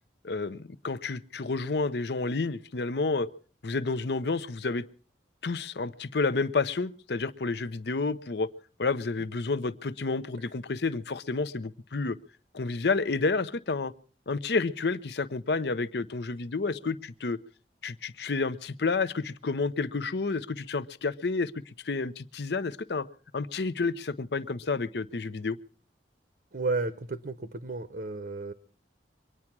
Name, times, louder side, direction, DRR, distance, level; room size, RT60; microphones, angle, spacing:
voice 1, 0.2-3.3 3.6-4.8 5.4-8.5 8.8-12.2 12.5-13.9 14.3-17.4 17.8-23.1 23.3-25.6, left 3 dB, 65° left, 15 dB, 0.7 m, -30 dB
voice 2, 26.5-28.5, right 3 dB, 55° right, 12 dB, 0.8 m, -32 dB
23.5 x 9.8 x 5.9 m, 0.42 s
head